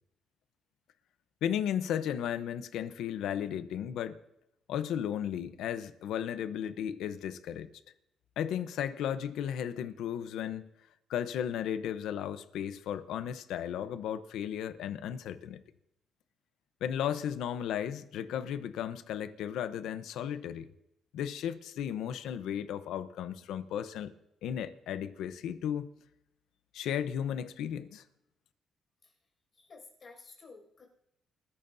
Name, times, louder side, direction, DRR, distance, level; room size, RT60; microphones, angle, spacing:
voice 1, 1.4-4.2 4.7-7.7 8.4-10.7 11.1-15.6 16.8-20.7 21.1-24.1 24.4-25.9 26.7-28.0, left 9 dB, 85° left, 0.8 m, -35 dB
voice 2, 29.5-30.8, left 4 dB, 45° left, 6.1 m, -53 dB
29.0 x 14.5 x 2.7 m
cardioid pair, 90°, 0 cm